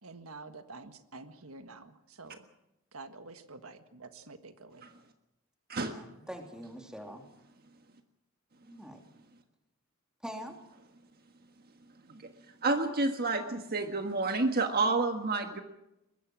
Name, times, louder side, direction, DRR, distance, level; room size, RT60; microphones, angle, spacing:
voice 1, 0.0-2.5 2.9-4.9, right 3 dB, 75° right, 9 dB, 1.6 m, -48 dB
voice 2, 5.8-7.2 8.6-9.0 10.2-10.6, equal, 5° right, 3 dB, 3.0 m, -44 dB
voice 3, 12.6-15.6, right 3 dB, 45° right, 6 dB, 1.5 m, -29 dB
22.5 x 21.0 x 6.2 m, 0.88 s
head